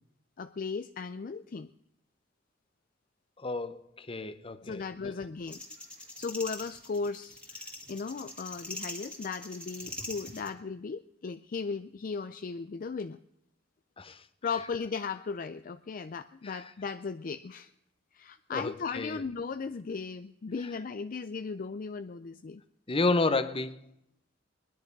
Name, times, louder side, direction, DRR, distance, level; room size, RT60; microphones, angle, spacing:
voice 1, 0.4-1.7 4.6-5.6 6.2-13.2 14.4-17.7 18.1-22.6, left 5 dB, 45° left, 11 dB, 0.4 m, -36 dB
voice 2, 3.4-5.2 14.0-14.2 16.4-16.6 18.5-19.2 22.9-23.8, left 3 dB, 30° left, 13 dB, 0.9 m, -31 dB
sound 1, 5.5-10.5, left 1 dB, 5° left, 2.0 m, -43 dB
20.0 x 10.5 x 5.3 m, 0.78 s
head